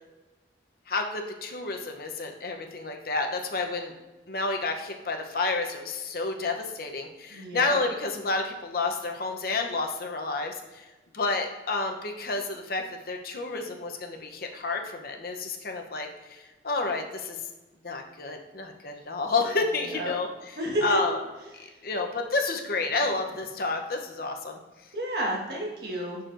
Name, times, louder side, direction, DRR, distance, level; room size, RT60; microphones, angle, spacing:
voice 1, 0.9-3.9 4.3-10.9 11.1-17.4 17.8-21.2 21.5-24.6, left 3 dB, 55° left, 3 dB, 0.7 m, -30 dB
voice 2, 7.3-7.8 20.0-20.1 20.6-21.0 24.9-26.2, right 1 dB, 60° right, -1 dB, 1.5 m, -30 dB
11.0 x 4.2 x 2.5 m, 1.1 s
head